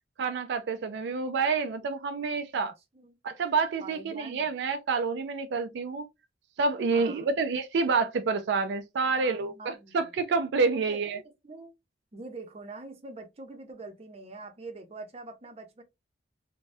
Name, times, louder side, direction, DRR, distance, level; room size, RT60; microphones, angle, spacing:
voice 1, 0.2-2.7 3.2-6.0 6.6-11.2, right 4 dB, 70° right, 0.4 m, -28 dB
voice 2, 3.8-4.5 6.9-7.3 9.0-10.0 10.7-11.7 12.1-15.8, right 3 dB, 35° right, 0.6 m, -44 dB
3.3 x 2.2 x 2.6 m
head